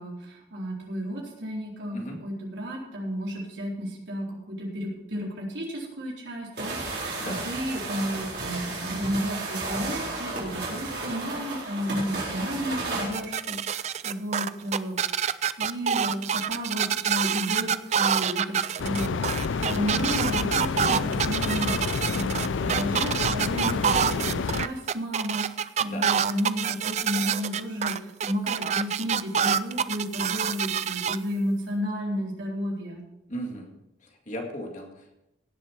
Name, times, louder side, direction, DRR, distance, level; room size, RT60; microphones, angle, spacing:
voice 1, 0.0-15.0 15.6-19.2 19.5-25.4 25.8-33.0, equal, 75° right, -2 dB, 4.1 m, -32 dB
sound 1, 6.6-13.1, right 2 dB, 55° right, 4.2 m, -33 dB
sound 2, 13.1-31.2, right 8 dB, 35° right, 0.3 m, -26 dB
sound 3, 18.8-24.7, left 5 dB, 85° left, 0.4 m, -29 dB
voice 2, 33.3-33.7 34.0-35.1, equal, 40° left, 2 dB, 2.0 m, -37 dB
17.0 x 7.4 x 4.6 m, 0.88 s
head